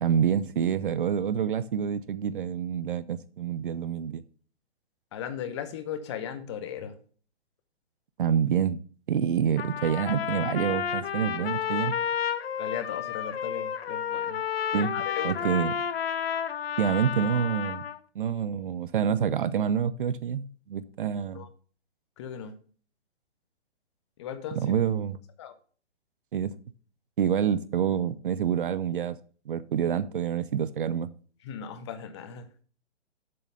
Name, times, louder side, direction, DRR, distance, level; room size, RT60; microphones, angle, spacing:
voice 1, 0.0-4.2 8.2-8.8 9.1-11.9 14.7-14.9 15.2-15.8 16.8-17.8 18.2-21.5 24.6-25.2 26.3-26.5 27.2-29.2 29.5-31.1, right 8 dB, 50° right, 16 dB, 0.5 m, -27 dB
voice 2, 5.1-7.0 12.6-14.4 14.7-15.5 21.3-21.5 22.2-22.5 24.2-24.6 25.4-25.5 31.4-32.5, left 8 dB, 25° left, 10 dB, 0.6 m, -37 dB
Trumpet, 9.6-18.0, left 8 dB, 60° left, 0.7 m, -31 dB
7.5 x 4.0 x 6.6 m, 0.42 s
figure-of-eight pair, 125°, 34 cm